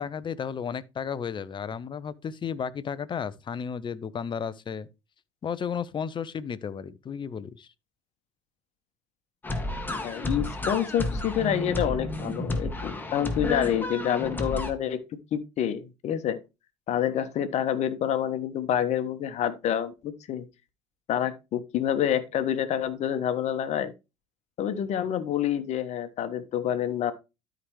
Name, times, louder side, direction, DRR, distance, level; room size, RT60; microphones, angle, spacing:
voice 1, 0.0-4.9 5.4-7.7, left 7 dB, 30° left, 0.8 m, -33 dB
sound 1, 9.4-14.7, left 1 dB, 10° left, 2.0 m, -31 dB
voice 2, 10.0-15.0 15.3-16.4 16.9-20.4 21.1-23.9 24.6-27.1, left 10 dB, 50° left, 1.3 m, -28 dB
12.5 x 5.2 x 3.1 m
figure-of-eight pair, 60°, 15 cm